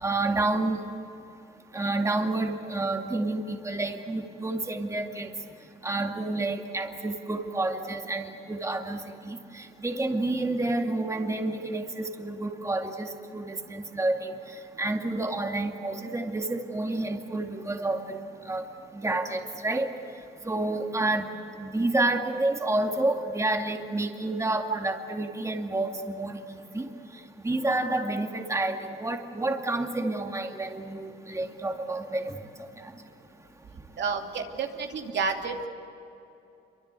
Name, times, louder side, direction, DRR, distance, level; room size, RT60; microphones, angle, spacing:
voice 1, 0.0-0.8 1.7-5.3 5.8-9.0 9.2-9.4 9.8-14.3 14.8-18.2 18.5-18.6 19.0-19.9 20.5-21.3 21.6-26.4 26.7-26.8 27.4-32.3, right 2 dB, 15° right, 3 dB, 2.3 m, -29 dB
voice 2, 34.0-35.7, right 5 dB, 65° right, 2 dB, 2.7 m, -30 dB
27.5 x 24.5 x 8.3 m, 2.8 s
cardioid pair, 90°, 20 cm